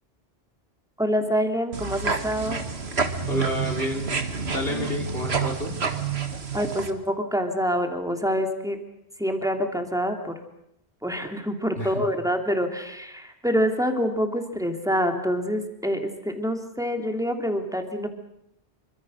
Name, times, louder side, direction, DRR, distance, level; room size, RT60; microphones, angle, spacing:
voice 1, 1.0-2.6 6.5-8.8 9.2-10.3 11.0-18.1, equal, 5° right, 4 dB, 2.9 m, -26 dB
sound 1, 1.7-6.9, right 5 dB, 85° right, 2.0 m, -28 dB
voice 2, 3.3-4.1 4.5-5.7 11.8-12.0, left 1 dB, 65° left, 1 dB, 4.3 m, -29 dB
27.0 x 25.0 x 6.6 m, 0.78 s
omnidirectional pair, 1.1 m